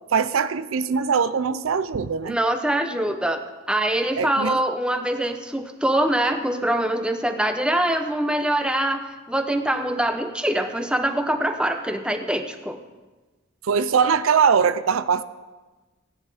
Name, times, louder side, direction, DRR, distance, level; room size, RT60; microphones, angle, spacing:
voice 1, 0.1-2.4 4.2-4.6 13.6-15.2, right 6 dB, 85° right, 14 dB, 0.5 m, -21 dB
voice 2, 2.3-3.4 3.7-12.8, right 1 dB, 5° right, 6 dB, 0.7 m, -24 dB
16.5 x 9.8 x 5.0 m, 1.3 s
head